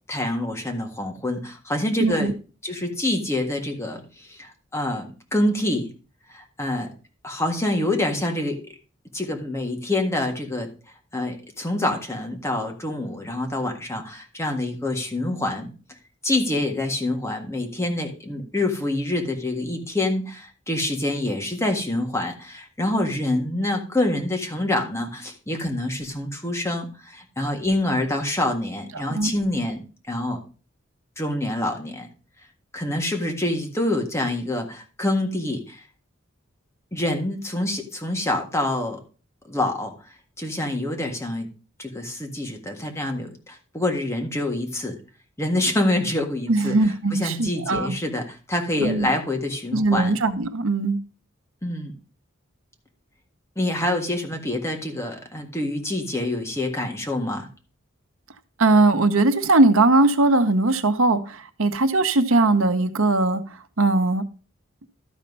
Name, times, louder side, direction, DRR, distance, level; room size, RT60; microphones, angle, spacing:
voice 1, 0.1-2.3 2.6-5.9 6.3-6.9 7.2-8.6 9.1-10.7 11.1-15.7 16.2-30.4 31.2-32.1 32.7-35.8 36.9-39.0 39.5-39.9 40.4-41.5 41.8-44.9 45.4-46.7 47.1-50.1 51.6-51.9 53.5-57.5, left 1 dB, 15° left, 1.7 m, -26 dB
voice 2, 2.0-2.3 29.1-29.3 46.5-48.0 48.8-49.1 49.7-51.0 58.6-63.4 63.8-64.2, right 2 dB, 85° right, 1.0 m, -20 dB
13.0 x 4.4 x 5.4 m
head